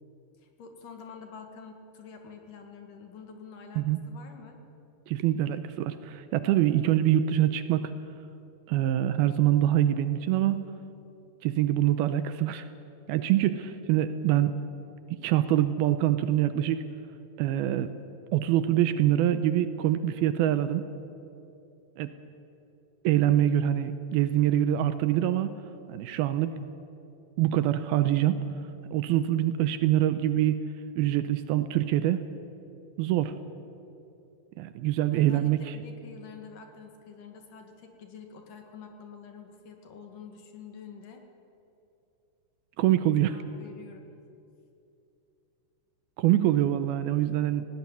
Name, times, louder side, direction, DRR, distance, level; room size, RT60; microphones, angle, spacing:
voice 1, 0.4-4.6 35.1-41.2 43.2-44.1, left 6 dB, 60° left, 5 dB, 2.9 m, -47 dB
voice 2, 5.1-7.9 8.7-10.7 11.4-12.7 13.1-14.6 15.2-16.8 17.4-17.9 18.3-20.9 22.0-22.1 23.0-25.6 25.9-26.5 27.4-28.4 28.9-30.6 31.0-32.2 33.0-33.3 34.6-35.8 42.8-43.4 46.2-47.7, right 12 dB, 80° right, 11 dB, 2.4 m, -25 dB
18.0 x 18.0 x 9.7 m, 2.7 s
omnidirectional pair, 4.7 m